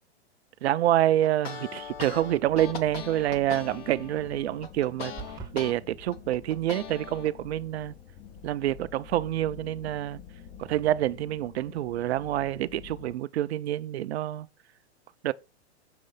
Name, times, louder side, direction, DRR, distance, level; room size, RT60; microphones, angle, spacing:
voice 1, 0.6-5.1 5.5-8.0 8.4-10.2 10.6-14.5 15.2-15.3, right 13 dB, 70° right, 0.5 m, -27 dB
sound 1, 1.2-5.7 6.1-7.3, left 7 dB, 60° left, 1.2 m, -39 dB
sound 2, 1.7-13.1, left 7 dB, 15° left, 0.4 m, -48 dB
sound 3, 5.2-5.6, right 6 dB, 10° right, 0.7 m, -40 dB
6.6 x 3.1 x 5.5 m
hypercardioid pair, 135°, 33 cm